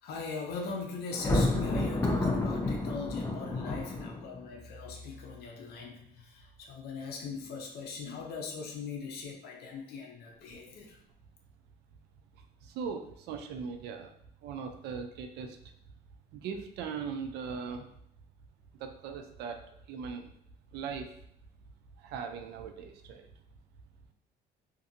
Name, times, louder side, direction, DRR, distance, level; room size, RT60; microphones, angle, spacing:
voice 1, 0.0-11.0, left 4 dB, 70° left, 2 dB, 0.5 m, -40 dB
Thunder, 1.1-4.4, left 2 dB, 20° left, 0.5 m, -30 dB
voice 2, 12.6-14.1 14.4-15.6 16.3-17.9 18.8-19.6 19.9-20.3 20.7-21.1 22.0-23.3, right 6 dB, 80° right, 5 dB, 0.4 m, -39 dB
2.6 x 2.5 x 2.6 m, 0.74 s
cardioid pair, 110°, 17 cm